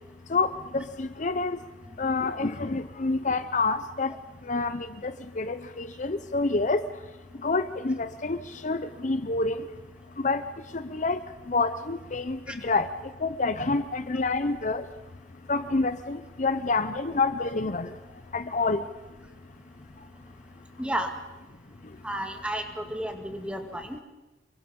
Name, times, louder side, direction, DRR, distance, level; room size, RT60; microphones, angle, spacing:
voice 1, 0.3-1.6 2.0-4.1 4.5-6.8 7.4-9.6 10.2-10.4 10.7-12.9 13.2-14.8 15.5-17.9 18.3-18.8, left 3 dB, 45° left, 11 dB, 0.7 m, -28 dB
voice 2, 20.8-21.1 22.0-24.0, right 1 dB, 5° right, 5 dB, 2.2 m, -32 dB
28.0 x 23.5 x 5.4 m, 1.1 s
head